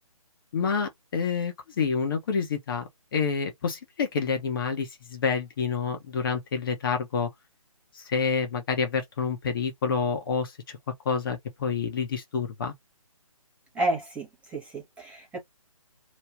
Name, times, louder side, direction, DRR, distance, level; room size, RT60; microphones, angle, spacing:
voice 1, 0.5-2.8 3.1-7.3 7.9-10.8 11.0-12.7, left 5 dB, 40° left, 1.2 m, -28 dB
voice 2, 13.7-15.4, right 2 dB, 5° right, 1.0 m, -31 dB
3.1 x 2.6 x 3.6 m
figure-of-eight pair, 150°, 18 cm